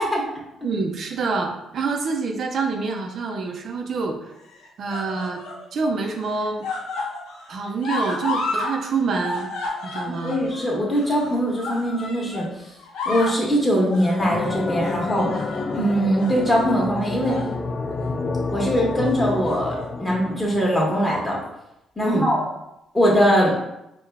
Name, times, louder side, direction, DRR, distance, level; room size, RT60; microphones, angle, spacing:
voice 1, 0.6-4.2 4.8-5.4 5.7-6.7 7.5-9.5 9.8-10.4 22.0-22.3, right 4 dB, 60° right, 2 dB, 0.5 m, -26 dB
sound 1, 2.9-3.5 4.4-5.6 6.0-8.7 9.0-12.5 12.8-13.4 13.9-14.2 14.8-15.8 16.2-16.4 17.0-17.5 17.9-18.1 19.2-19.8 20.7-20.8, left 2 dB, 90° left, 0.7 m, -32 dB
voice 2, 10.1-12.5 13.0-15.3 15.7-17.4 18.5-21.4 22.0-22.4 22.9-23.5, equal, 15° left, -3 dB, 1.5 m, -21 dB
sound 2, 14.2-21.0, left 3 dB, 40° left, 0.3 m, -29 dB
4.5 x 2.3 x 3.5 m, 0.86 s
cardioid pair, 90°, 0 cm